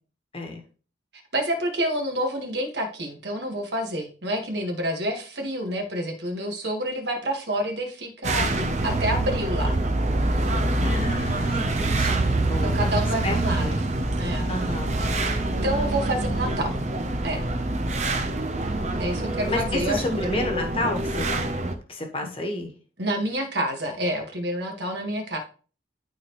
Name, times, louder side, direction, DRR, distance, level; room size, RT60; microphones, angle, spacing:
voice 1, 1.3-9.8 12.6-13.9 14.2-14.5 15.2-16.7 17.2-17.5 19.0-20.2 23.0-25.4, right 1 dB, 65° right, 3 dB, 1.8 m, -28 dB
sound 1, 8.2-21.7, right 2 dB, 35° right, 0.8 m, -25 dB
voice 2, 10.8-13.8 14.5-15.0 19.5-21.3 21.9-22.7, left 1 dB, 30° left, 3 dB, 1.4 m, -31 dB
12.0 x 4.3 x 3.2 m, 0.38 s
head